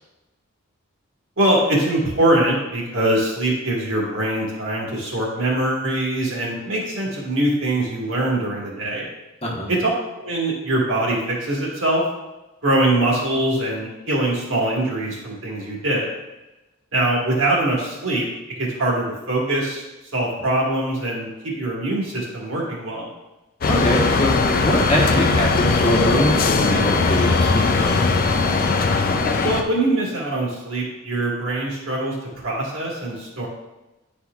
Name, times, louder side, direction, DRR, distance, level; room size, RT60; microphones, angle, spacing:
voice 1, 1.4-9.1 9.7-9.9 10.2-12.0 12.6-16.1 16.9-19.8 20.1-23.1 29.4-33.5, right 1 dB, 65° right, -4 dB, 1.8 m, -23 dB
sound 1, 23.6-29.6, left 4 dB, 40° left, 0.4 m, -19 dB
voice 2, 23.7-28.0, equal, 25° left, -1 dB, 1.0 m, -23 dB
9.5 x 4.3 x 2.4 m, 1.0 s
head